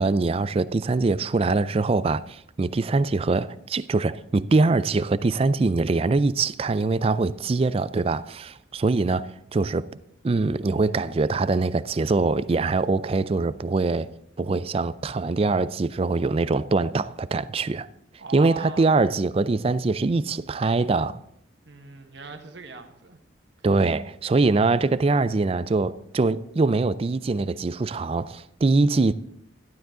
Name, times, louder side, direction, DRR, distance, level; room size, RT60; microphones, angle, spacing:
voice 1, 0.0-9.9 10.2-14.1 14.4-17.9 18.3-21.2 23.6-29.1, right 3 dB, 30° right, 0.3 m, -23 dB
voice 2, 18.2-19.0 21.6-23.2, right 4 dB, 65° right, 1.4 m, -40 dB
12.5 x 12.0 x 3.8 m
head